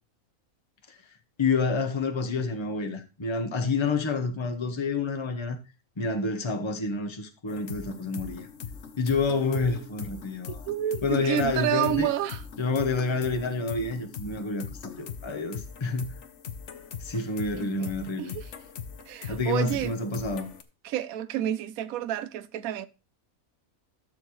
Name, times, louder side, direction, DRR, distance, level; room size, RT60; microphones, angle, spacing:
voice 1, 1.4-5.6 6.0-8.5 9.0-10.6 11.0-12.1 12.6-16.1 17.0-18.3 19.3-20.5, left 3 dB, 20° left, 0.9 m, -28 dB
sound 1, 7.5-20.6, left 7 dB, 55° left, 1.2 m, -41 dB
voice 2, 9.4-9.8 10.5-12.4 17.5-17.9 18.2-18.5 19.1-20.2 20.8-22.9, right 11 dB, 75° right, 1.1 m, -30 dB
13.5 x 6.9 x 3.1 m
omnidirectional pair, 1.5 m